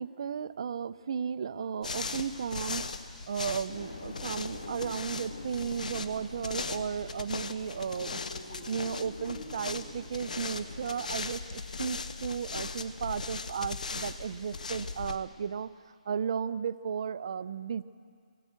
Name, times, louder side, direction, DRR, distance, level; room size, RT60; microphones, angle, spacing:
voice 1, 0.0-2.9 3.3-8.3 8.6-15.7 16.1-17.8, right 7 dB, 40° right, 13 dB, 0.5 m, -34 dB
sound 1, 1.8-15.2, left 4 dB, 75° left, 1.2 m, -39 dB
sound 2, 3.7-11.1, left 2 dB, 50° left, 6.6 m, -46 dB
18.5 x 18.0 x 8.0 m, 2.2 s
hypercardioid pair, 170°, 4 cm